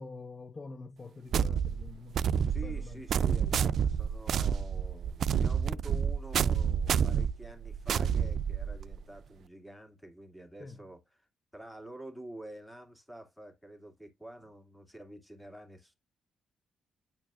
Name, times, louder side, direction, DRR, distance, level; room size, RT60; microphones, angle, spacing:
voice 1, 0.0-3.1 10.6-10.8, left 3 dB, 35° left, 0.6 m, -46 dB
sound 1, 1.3-9.0, right 7 dB, 65° right, 0.4 m, -29 dB
voice 2, 2.5-16.0, right 1 dB, 5° left, 2.2 m, -48 dB
9.3 x 4.5 x 2.5 m
cardioid pair, 85°, 0 cm